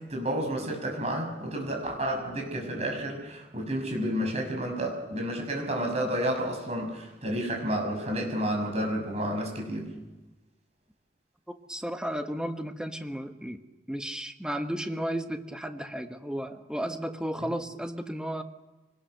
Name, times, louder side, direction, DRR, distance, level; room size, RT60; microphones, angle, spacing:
voice 1, 0.1-9.9, right 1 dB, 40° right, 2 dB, 6.2 m, -30 dB
voice 2, 11.5-13.6 13.9-18.4, equal, 5° right, 6 dB, 1.2 m, -34 dB
24.0 x 19.5 x 6.7 m, 1.1 s
head